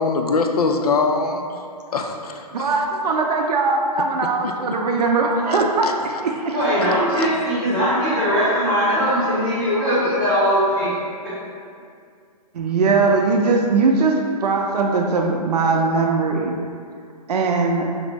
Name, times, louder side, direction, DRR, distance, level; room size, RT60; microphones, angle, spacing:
voice 1, 0.0-1.5 1.9-2.8 4.4-4.5 5.8-5.9 7.2-7.3, left 4 dB, 70° left, 4 dB, 0.4 m, -22 dB
voice 2, 2.5-6.6 12.5-16.6 17.3-17.9, right 3 dB, 80° right, 1 dB, 0.5 m, -20 dB
voice 3, 6.4-11.0 11.2-11.4, equal, 10° left, -12 dB, 0.7 m, -20 dB
5.1 x 2.0 x 3.3 m, 2.3 s
hypercardioid pair, 180°, 20 cm